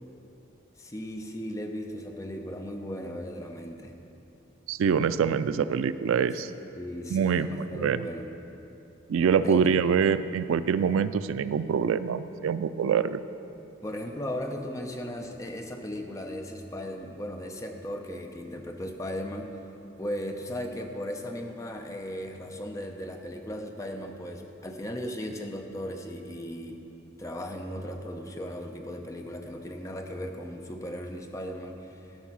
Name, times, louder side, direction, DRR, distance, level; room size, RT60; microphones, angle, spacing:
voice 1, 0.8-3.9 6.8-8.3 9.4-9.8 13.8-19.5 20.0-26.8 27.2-32.2, equal, 15° left, 3 dB, 0.6 m, -37 dB
voice 2, 4.7-6.5 7.1-8.1 9.1-13.2, right 7 dB, 80° right, 14 dB, 0.3 m, -25 dB
12.0 x 5.5 x 6.0 m, 2.8 s
head